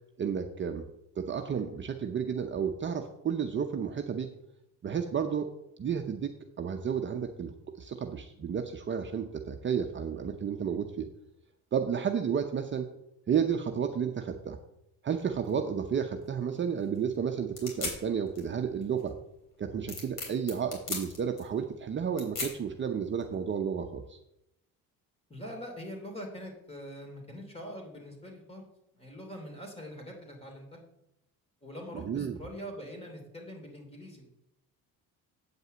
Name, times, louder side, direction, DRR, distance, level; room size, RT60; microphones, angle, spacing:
voice 1, 0.2-0.8 1.2-4.3 4.8-5.5 5.8-11.1 11.7-12.9 13.3-14.6 15.0-19.1 19.6-24.2 31.9-32.4, right 7 dB, 30° right, 4 dB, 0.8 m, -32 dB
sound 1, 15.4-23.5, left 3 dB, 60° left, 3.7 m, -42 dB
voice 2, 25.3-28.6 28.9-30.8 31.6-34.3, equal, 15° left, 2 dB, 3.0 m, -43 dB
8.5 x 5.4 x 7.9 m, 0.83 s
cardioid pair, 115°, 36 cm